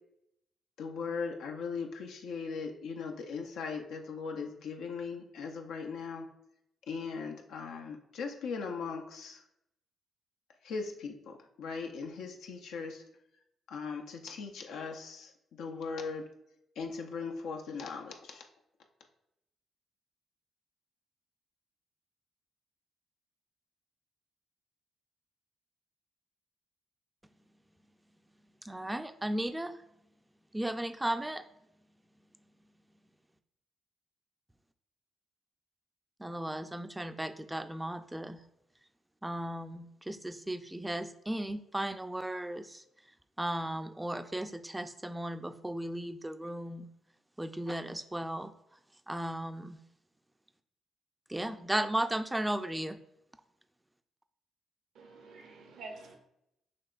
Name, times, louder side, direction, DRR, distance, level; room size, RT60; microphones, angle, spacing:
voice 1, 0.8-6.3 6.9-9.4 10.6-13.0 13.7-16.3 16.8-18.5, left 5 dB, 80° left, 3 dB, 0.5 m, -39 dB
voice 2, 28.6-29.8 30.5-31.4 36.2-38.4 39.2-42.8 43.4-46.9 47.4-48.5 49.1-49.8 51.3-53.0, right 1 dB, 10° right, 9 dB, 0.4 m, -35 dB
voice 3, 55.0-56.2, right 3 dB, 75° right, 3 dB, 0.7 m, -48 dB
6.9 x 2.9 x 2.4 m, 0.80 s
supercardioid pair, 50°, 0 cm